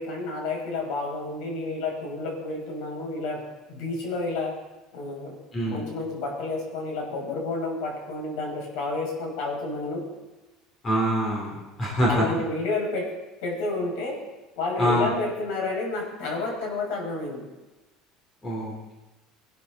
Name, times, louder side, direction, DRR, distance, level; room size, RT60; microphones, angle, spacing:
voice 1, 0.0-3.4 3.7-4.5 4.9-5.4 5.6-10.0 12.1-13.1 13.4-14.2 14.6-17.5, left 3 dB, 70° left, 0 dB, 6.4 m, -30 dB
voice 2, 5.5-5.8 10.8-12.2 14.8-15.1 18.4-18.9, equal, 20° left, -3 dB, 3.8 m, -25 dB
23.0 x 12.0 x 4.1 m, 1.1 s
cardioid pair, 175°, 0 cm